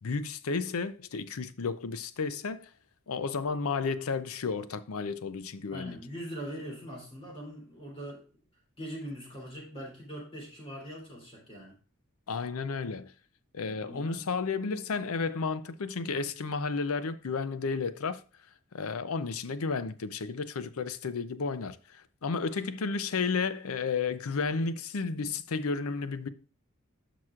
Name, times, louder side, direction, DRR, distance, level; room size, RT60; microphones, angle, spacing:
voice 1, 0.0-2.7 3.1-6.0 12.3-13.1 13.5-18.2 18.7-26.3, left 4 dB, 85° left, 0.6 m, -32 dB
voice 2, 5.7-8.3 8.8-11.8 13.6-14.3, equal, 25° left, 3.0 m, -42 dB
11.0 x 6.0 x 2.4 m
head